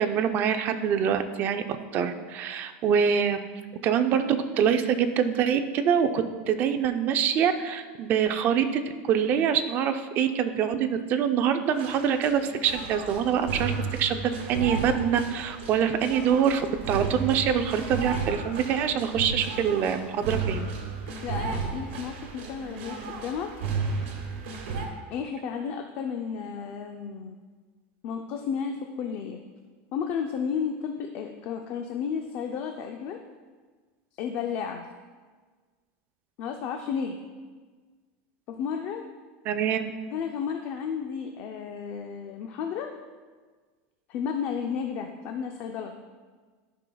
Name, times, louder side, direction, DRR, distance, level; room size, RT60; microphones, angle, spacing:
voice 1, 0.0-1.6 1.9-3.4 3.8-13.7 14.0-20.7 39.5-39.9, right 8 dB, 30° right, 8 dB, 0.4 m, -25 dB
sound 1, 11.7-24.9, right 4 dB, 80° right, 1.5 m, -34 dB
voice 2, 21.1-23.6 25.1-27.4 28.0-29.4 29.9-33.2 34.1-34.9 36.4-37.2 38.5-39.1 40.1-42.9 44.1-45.9, left 7 dB, 35° left, 4 dB, 0.4 m, -32 dB
13.0 x 5.5 x 2.3 m, 1.5 s
supercardioid pair, 170°, 6 cm